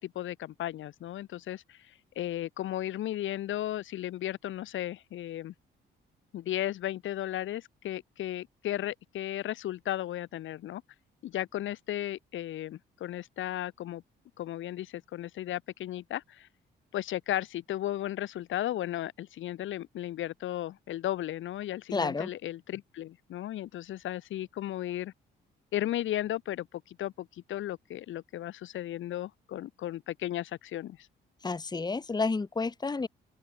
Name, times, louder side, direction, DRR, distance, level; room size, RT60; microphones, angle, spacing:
voice 1, 0.0-5.5 6.3-10.8 11.2-14.0 14.4-16.5 16.9-25.1 25.7-31.1, left 13 dB, 80° left, 2.6 m, -35 dB
voice 2, 21.9-22.3 31.4-33.1, left 4 dB, 20° left, 1.3 m, -30 dB
open air
cardioid pair, 90°, 20 cm